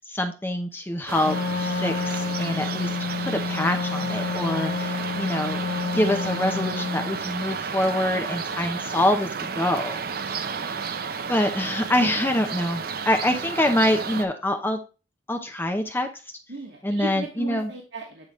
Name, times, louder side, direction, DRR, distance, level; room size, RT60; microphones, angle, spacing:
voice 1, 0.0-2.9 3.2-10.4 11.3-14.8 15.3-16.1 16.8-17.7, left 1 dB, 15° left, 5 dB, 0.8 m, -25 dB
sound 1, 1.1-14.2, right 5 dB, 60° right, 0.6 m, -32 dB
Wind instrument woodwind instrument, 1.2-7.2, left 4 dB, 80° left, 0.4 m, -29 dB
voice 2, 16.5-18.3, right 2 dB, 80° right, -1 dB, 1.5 m, -37 dB
8.6 x 4.2 x 3.1 m, 0.32 s
head